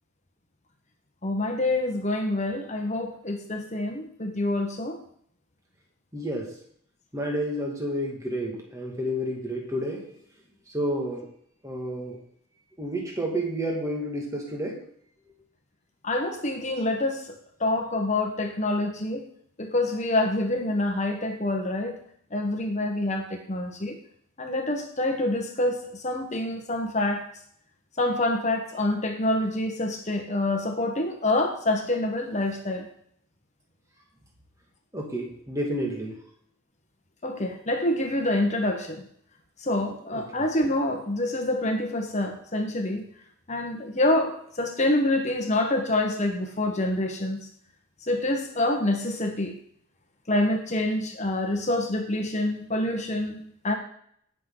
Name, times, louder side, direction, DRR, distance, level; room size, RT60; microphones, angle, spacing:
voice 1, 1.2-5.0 16.0-17.2 17.6-19.3 19.6-22.0 22.3-24.0 24.4-27.3 28.0-32.9 37.2-39.1 39.6-43.0 43.5-47.4 48.1-49.5 50.3-53.7, left 1 dB, 30° left, 4 dB, 1.2 m, -26 dB
voice 2, 6.1-6.5 7.1-10.0 10.7-11.2 11.6-12.1 12.8-14.8 34.9-36.1 40.1-40.5, equal, 15° right, 0 dB, 2.0 m, -30 dB
18.0 x 6.4 x 3.9 m, 0.65 s
head